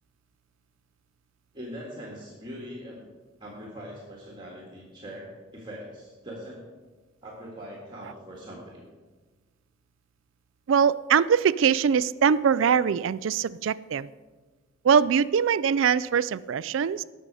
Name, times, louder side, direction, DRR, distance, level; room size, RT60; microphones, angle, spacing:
voice 1, 1.5-3.0 3.4-6.6 7.2-8.9, equal, 20° right, -2 dB, 1.8 m, -41 dB
voice 2, 10.7-14.1 14.8-17.0, right 7 dB, 70° right, 18 dB, 0.3 m, -22 dB
18.0 x 6.6 x 4.8 m, 1.4 s
head